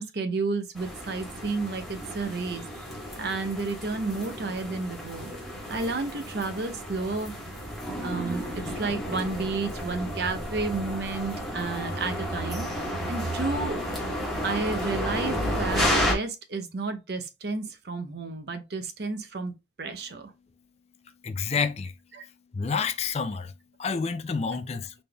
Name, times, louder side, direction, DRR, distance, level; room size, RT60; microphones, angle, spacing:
voice 1, 0.0-2.8 3.2-7.3 8.0-12.7 13.1-13.8 14.4-20.3 22.1-22.2, right 3 dB, 60° right, 0.7 m, -31 dB
sound 1, 0.8-16.1, equal, ahead, 1.2 m, -32 dB
voice 2, 21.2-21.9 22.5-23.5 23.8-24.9, left 5 dB, 35° left, 0.4 m, -29 dB
4.0 x 3.4 x 2.3 m
head